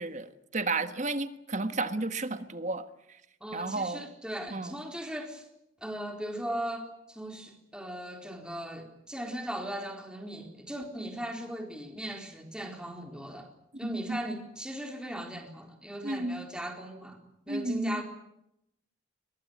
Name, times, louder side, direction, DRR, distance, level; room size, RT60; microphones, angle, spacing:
voice 1, 0.0-2.9 3.5-4.0 4.5-4.8 13.8-14.2 16.0-16.4 17.5-18.0, right 2 dB, 35° right, 10 dB, 1.5 m, -32 dB
voice 2, 3.4-5.5 5.8-13.5 13.8-17.2 17.5-18.0, right 1 dB, 5° right, 3 dB, 4.0 m, -38 dB
22.5 x 22.0 x 9.5 m, 0.81 s
head